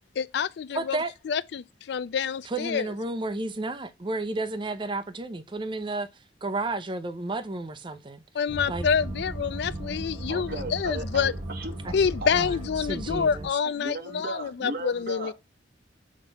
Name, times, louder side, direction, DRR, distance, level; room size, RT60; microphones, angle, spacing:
voice 1, 0.2-1.0 1.3-2.9 8.3-11.3 11.9-15.3, left 6 dB, 60° left, 0.3 m, -27 dB
voice 2, 0.7-1.1 2.4-6.1 6.4-8.2 8.7-8.9 12.3-13.5, right 2 dB, 25° right, 0.6 m, -32 dB
sound 1, 8.5-13.5, right 1 dB, 80° right, 3.9 m, -36 dB
voice 3, 10.3-11.8 12.2-12.5 13.6-15.3, right 2 dB, 55° right, 1.1 m, -36 dB
7.3 x 3.0 x 5.3 m
head